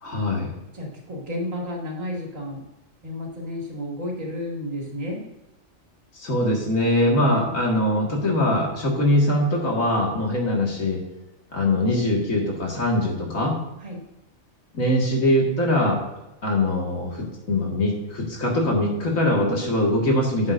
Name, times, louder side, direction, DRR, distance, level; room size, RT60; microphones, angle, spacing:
voice 1, 0.0-0.5 6.2-11.0 11.5-13.5 14.7-16.0 16.4-20.5, left 1 dB, 70° left, -1 dB, 2.3 m, -22 dB
voice 2, 0.7-2.6 3.0-5.2 7.2-7.6 13.8-14.0, left 1 dB, 65° right, -2 dB, 3.0 m, -32 dB
12.0 x 8.9 x 2.6 m, 0.97 s
omnidirectional pair, 1.4 m